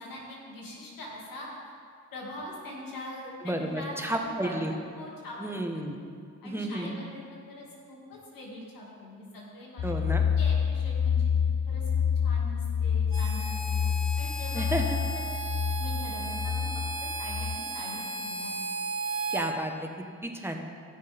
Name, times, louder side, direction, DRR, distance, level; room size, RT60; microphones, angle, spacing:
voice 1, 0.0-1.7 2.1-4.2 4.4-5.4 5.7-6.0 6.4-7.2 7.5-10.1 10.3-11.2 11.7-11.9 12.2-15.3 15.8-16.7 17.0-18.6, left 1 dB, 85° left, -3 dB, 2.4 m, -43 dB
voice 2, 3.4-4.7 5.4-6.0 6.4-6.9 9.8-10.3 14.5-15.0 19.3-19.9 20.2-20.6, right 1 dB, 5° right, 3 dB, 1.3 m, -32 dB
sound 1, 9.8-17.6, left 7 dB, 40° left, 0.6 m, -28 dB
Harmonica, 13.1-19.4, right 3 dB, 40° right, 2.6 m, -35 dB
15.0 x 6.5 x 3.6 m, 2.2 s
supercardioid pair, 50°, 33 cm